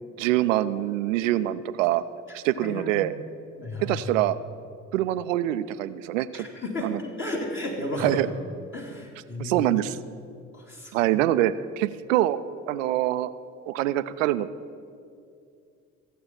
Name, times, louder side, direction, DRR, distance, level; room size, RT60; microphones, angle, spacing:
voice 1, 0.2-2.0 2.3-3.1 3.8-4.4 4.9-6.5 6.8-7.0 8.0-8.3 9.4-10.0 10.9-12.4 12.7-13.3 13.7-14.5, right 14 dB, 80° right, 14 dB, 0.5 m, -24 dB
voice 2, 2.3-3.0 3.6-4.1 6.3-8.2 8.7-9.6 10.5-11.0, left 1 dB, 30° left, -1 dB, 2.2 m, -33 dB
14.5 x 7.7 x 5.7 m, 2.4 s
hypercardioid pair, 50°, 38 cm